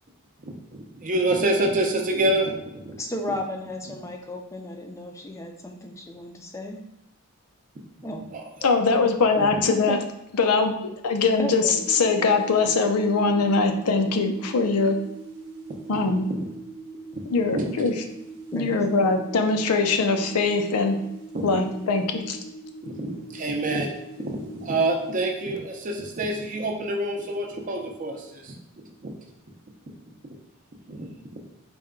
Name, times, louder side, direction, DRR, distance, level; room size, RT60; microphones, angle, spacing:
voice 1, 0.5-3.0 8.3-8.7 15.9-16.0 16.4-16.5 17.1-17.2 17.5-17.9 21.3-21.6 22.8-28.5 29.0-29.1 30.9-31.0, right 1 dB, 35° right, 2 dB, 0.5 m, -27 dB
voice 2, 3.0-6.9 8.0-8.3 9.4-9.5 9.9-10.0 11.4-11.8 18.5-18.8, left 1 dB, 15° left, 2 dB, 0.4 m, -34 dB
voice 3, 8.6-10.0 10.4-15.0 15.9-16.3 17.3-17.9 18.5-21.0 21.4-22.4, left 4 dB, 90° left, 5 dB, 0.5 m, -22 dB
sound 1, 11.7-25.2, right 4 dB, 70° right, 0.7 m, -41 dB
4.2 x 2.2 x 3.6 m, 0.89 s
head